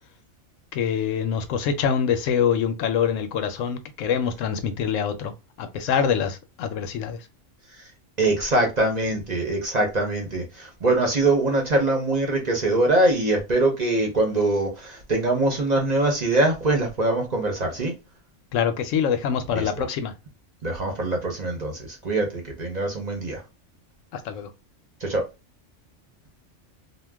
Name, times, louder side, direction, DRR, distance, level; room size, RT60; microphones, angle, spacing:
voice 1, 0.7-5.3 5.6-7.2 18.5-20.1 24.1-24.5, left 7 dB, 85° left, 1.0 m, -25 dB
voice 2, 8.2-17.9 19.5-19.7 20.6-23.4 25.0-25.3, right 2 dB, 40° right, 0.8 m, -23 dB
2.4 x 2.2 x 3.4 m
omnidirectional pair, 1.3 m